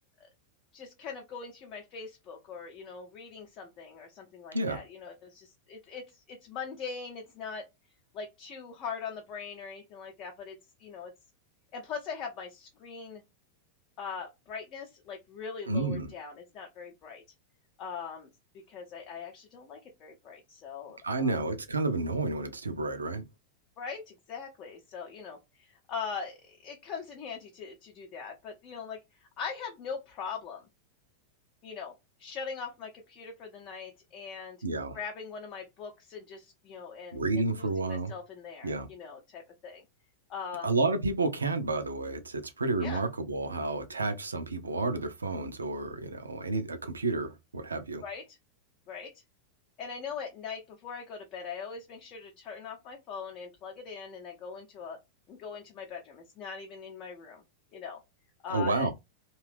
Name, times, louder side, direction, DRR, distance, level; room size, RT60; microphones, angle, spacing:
voice 1, 0.7-7.7 8.1-11.1 11.7-13.2 14.0-17.2 17.8-18.3 18.7-21.4 23.8-30.6 31.6-34.6 34.9-37.2 37.5-39.8 40.3-40.7 42.8-43.0 48.0-48.4 48.9-49.1 49.8-55.0 55.3-57.4 57.7-58.0 58.4-58.9, left 6 dB, 35° left, 0.6 m, -41 dB
voice 2, 15.7-16.1 21.0-23.2 34.6-35.0 37.1-38.1 38.6-38.9 40.6-48.0 58.5-58.9, right 3 dB, 75° right, 0.5 m, -30 dB
2.7 x 2.3 x 3.2 m
figure-of-eight pair, 90°, 0 cm